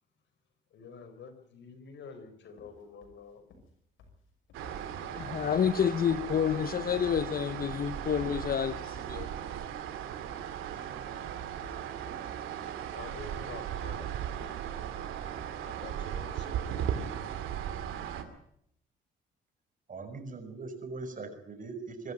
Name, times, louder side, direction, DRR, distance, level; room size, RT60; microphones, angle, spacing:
voice 1, 0.7-3.4 4.6-5.5 6.0-6.1 12.9-14.1 14.4-14.5 15.6-16.8, left 5 dB, 65° left, 4.3 m, -49 dB
sound 1, 2.5-5.1 6.8-9.3 10.2-12.8, left 3 dB, 85° left, 6.2 m, -55 dB
sound 2, 4.5-18.2, right 9 dB, 90° right, 2.4 m, -37 dB
voice 2, 5.1-9.3, left 8 dB, 50° left, 0.9 m, -29 dB
voice 3, 19.9-22.1, right 3 dB, 40° right, 6.0 m, -41 dB
24.5 x 13.0 x 9.4 m
cardioid pair, 90°, 20 cm